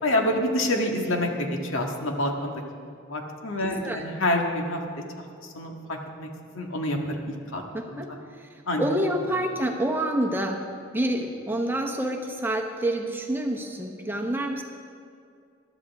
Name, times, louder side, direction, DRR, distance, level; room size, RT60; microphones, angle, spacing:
voice 1, 0.0-2.8 3.1-4.8 5.2-6.3 6.5-8.0 8.7-8.8, left 1 dB, 80° left, 2 dB, 1.7 m, -28 dB
voice 2, 3.6-4.0 7.7-8.1 8.4-10.6 10.9-14.6, right 1 dB, 10° right, 1 dB, 1.0 m, -28 dB
21.0 x 12.0 x 3.6 m, 2.3 s
head